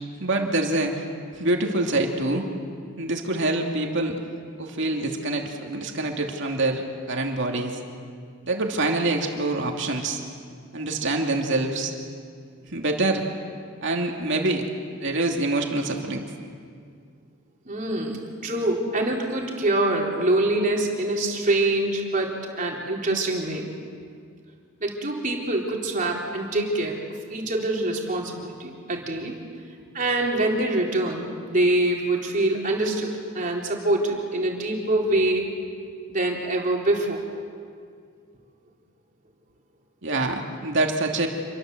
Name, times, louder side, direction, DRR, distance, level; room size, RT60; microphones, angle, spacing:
voice 1, 0.2-1.1 1.3-2.4 3.0-4.2 4.6-7.8 8.4-10.2 10.7-11.9 12.7-13.2 13.8-14.7 15.0-16.2 40.0-41.3, right 2 dB, 60° right, 2 dB, 2.6 m, -25 dB
voice 2, 17.7-23.7 24.8-29.4 29.9-35.5 36.1-37.2, right 2 dB, 40° right, -1 dB, 3.9 m, -25 dB
27.5 x 22.5 x 7.9 m, 2.1 s
head